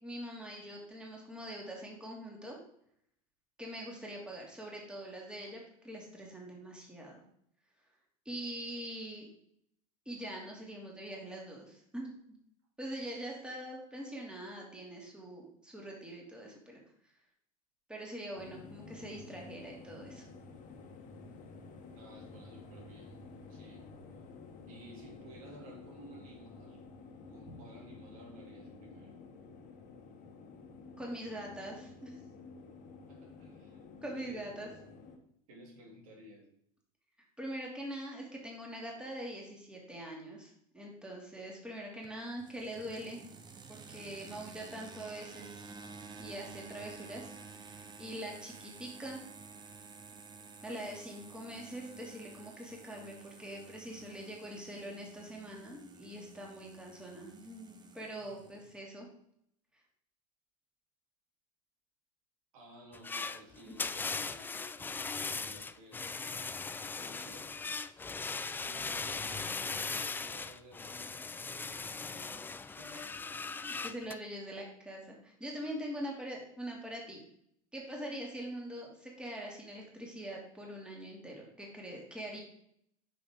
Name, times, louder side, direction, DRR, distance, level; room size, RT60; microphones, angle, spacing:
voice 1, 0.0-2.6 3.6-7.2 8.2-9.3 10.1-12.1 12.8-16.8 17.9-20.3 27.5-27.6 31.0-32.1 34.0-34.7 37.4-43.3 43.7-45.7 46.2-47.3 47.6-49.2 50.6-59.1 63.7-63.8 73.6-77.2 77.7-82.4, right 1 dB, 5° right, -1 dB, 2.6 m, -43 dB
sound 1, 18.4-35.2, left 4 dB, 45° left, 1.5 m, -51 dB
voice 2, 21.9-23.2 23.5-23.9 24.7-26.8 27.3-29.2 33.1-33.8 34.2-34.7 35.5-36.5 62.5-73.2, right 1 dB, 75° right, -1 dB, 2.8 m, -55 dB
sound 2, 42.0-58.8, right 4 dB, 25° right, 1.1 m, -52 dB
sound 3, 62.9-74.1, left 4 dB, 10° left, 0.3 m, -39 dB
8.4 x 6.1 x 3.8 m, 0.69 s
hypercardioid pair, 90°, 18 cm